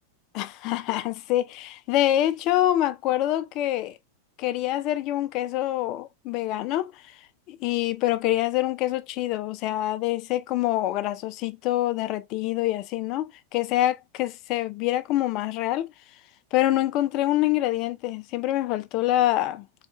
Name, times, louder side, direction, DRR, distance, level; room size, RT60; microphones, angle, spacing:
voice 1, 0.3-4.0 4.4-7.1 7.5-15.9 16.5-19.7, left 14 dB, 40° left, 0.4 m, -26 dB
4.2 x 2.4 x 3.0 m
figure-of-eight pair, 90°, 0 cm